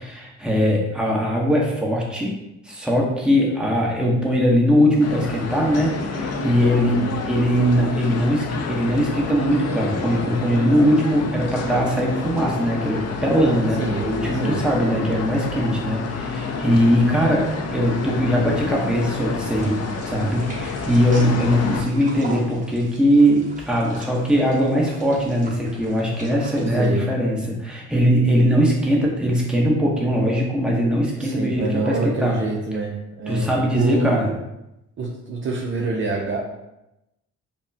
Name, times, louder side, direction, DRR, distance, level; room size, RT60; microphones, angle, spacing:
voice 1, 0.0-2.4 2.6-6.9 7.2-32.4 33.3-34.3, equal, 5° right, -3 dB, 1.0 m, -20 dB
sound 1, 5.0-21.8, left 4 dB, 55° left, 0.6 m, -29 dB
voice 2, 6.7-7.2 13.8-14.6 26.7-27.1 31.2-34.3 35.0-36.4, right 3 dB, 40° right, -1 dB, 0.6 m, -27 dB
sound 2, 19.4-26.9, right 2 dB, 25° right, 1.1 m, -41 dB
5.2 x 2.1 x 2.7 m, 0.89 s
cardioid pair, 90°, 30 cm